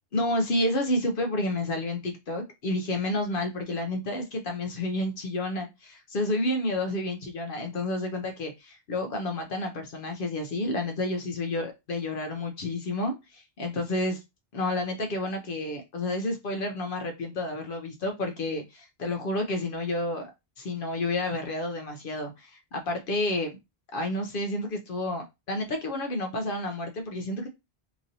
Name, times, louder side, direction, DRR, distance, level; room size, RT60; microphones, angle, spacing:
voice 1, 0.1-14.2 14.5-20.3 20.6-23.6 23.9-27.5, left 1 dB, 65° left, 0.8 m, -30 dB
3.0 x 2.6 x 2.6 m
omnidirectional pair, 1.0 m